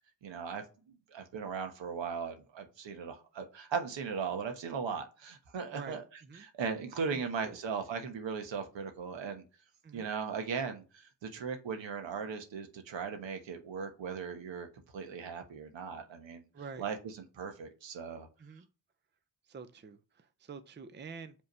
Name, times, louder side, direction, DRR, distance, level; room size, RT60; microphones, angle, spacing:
voice 1, 0.2-0.6 1.1-6.0 6.3-9.4 9.9-14.7 14.9-16.4 16.8-18.3, right 6 dB, 80° right, 1.4 m, -38 dB
voice 2, 5.7-6.5 7.1-7.6 9.8-10.1 16.5-16.9 18.4-18.7 19.5-21.3, right 5 dB, 25° right, 0.6 m, -47 dB
5.4 x 3.6 x 5.4 m
wide cardioid pair, 115°, 44 cm